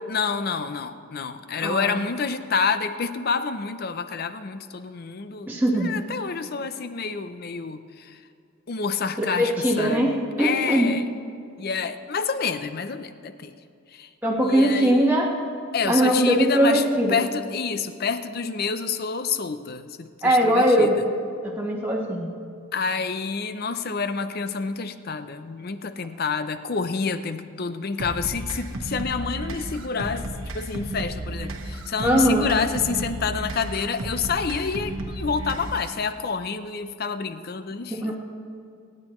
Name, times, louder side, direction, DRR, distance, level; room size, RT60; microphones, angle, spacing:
voice 1, 0.1-5.5 5.8-8.2 8.7-11.1 11.6-13.6 13.9-14.1 14.4-15.1 15.7-20.9 22.7-38.2, left 5 dB, 45° left, 11 dB, 0.6 m, -28 dB
voice 2, 1.6-2.0 5.5-5.9 9.4-10.9 14.2-15.3 15.8-17.2 20.2-21.0 21.4-22.3 32.0-32.6 37.9-38.2, right 1 dB, 10° right, -4 dB, 1.3 m, -21 dB
sound 1, 28.0-36.0, right 1 dB, 80° right, 1.2 m, -33 dB
25.5 x 9.7 x 3.1 m, 2.4 s
head